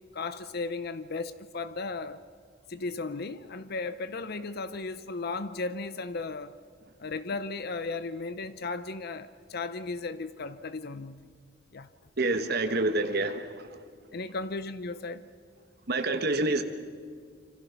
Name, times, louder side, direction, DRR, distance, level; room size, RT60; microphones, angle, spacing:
voice 1, 0.1-2.2 2.7-6.6 7.0-11.3 11.7-11.9 14.1-15.2, left 3 dB, 55° left, 0.7 m, -35 dB
voice 2, 12.2-13.7 15.9-16.6, right 2 dB, 55° right, 1.3 m, -27 dB
26.5 x 26.0 x 5.8 m
head